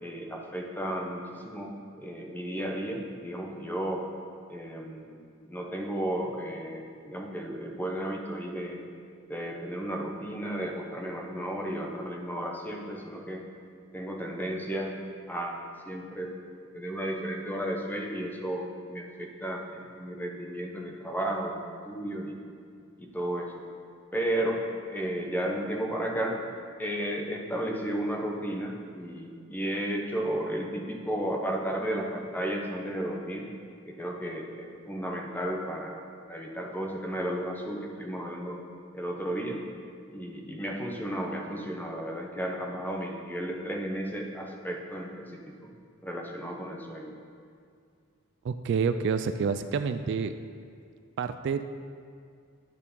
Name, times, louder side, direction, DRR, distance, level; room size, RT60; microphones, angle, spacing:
voice 1, 0.0-4.1 4.5-5.2 5.5-8.9 9.3-13.4 13.9-14.9 15.3-15.6 15.8-16.3 16.7-21.6 21.8-22.4 23.0-23.6 24.1-24.6 24.9-26.4 26.8-33.5 33.8-36.0 36.3-38.6 38.9-39.6 40.1-45.7 46.0-47.1, right 1 dB, 10° left, 0 dB, 0.8 m, -33 dB
voice 2, 48.4-50.3 51.2-51.7, right 5 dB, 55° right, 10 dB, 0.3 m, -28 dB
11.0 x 4.5 x 5.3 m, 2.2 s
head